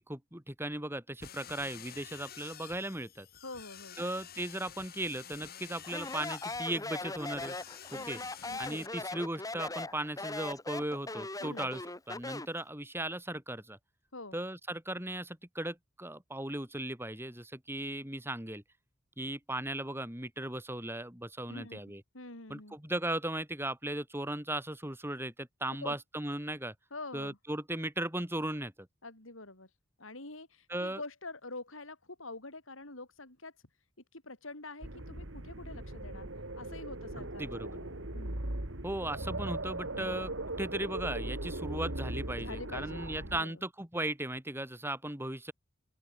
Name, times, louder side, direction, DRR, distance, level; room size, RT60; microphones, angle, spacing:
voice 1, 0.1-3.3 4.0-7.5 7.9-8.2 8.6-11.8 12.1-13.8 14.3-18.6 19.2-22.0 22.5-26.7 27.1-28.9 30.7-31.0 37.2-37.8 38.8-40.3 40.6-45.5, right 1 dB, 10° right, 4.7 m, -37 dB
sound 1, 1.2-8.9, left 8 dB, 50° left, 7.4 m, -50 dB
voice 2, 3.4-4.0 7.9-8.1 8.5-8.6 11.4-11.7 14.1-14.4 21.5-21.8 22.1-22.8 25.8-26.0 26.9-27.4 29.0-29.7 30.0-33.5 34.1-36.3 36.6-38.4 39.9-40.2 42.4-43.6, left 2 dB, 85° left, 6.2 m, -46 dB
Speech, 5.8-12.6, left 2 dB, 20° left, 2.7 m, -39 dB
sound 2, 34.8-43.4, right 1 dB, 70° right, 2.9 m, -39 dB
open air
head